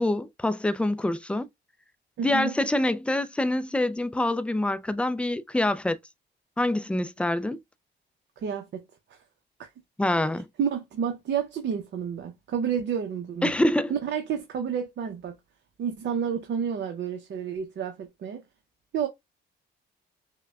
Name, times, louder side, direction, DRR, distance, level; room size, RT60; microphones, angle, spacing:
voice 1, 0.0-1.5 2.2-6.0 6.6-7.6 10.0-10.5 13.4-13.9, left 1 dB, 5° left, 0.4 m, -25 dB
voice 2, 2.2-2.5 8.4-8.8 9.1-9.2 9.6-9.7 10.6-13.5 13.9-15.3 15.8-18.4 18.9-19.1, right 7 dB, 65° right, 0.8 m, -30 dB
5.8 x 2.2 x 2.3 m
cardioid pair, 90°, 20 cm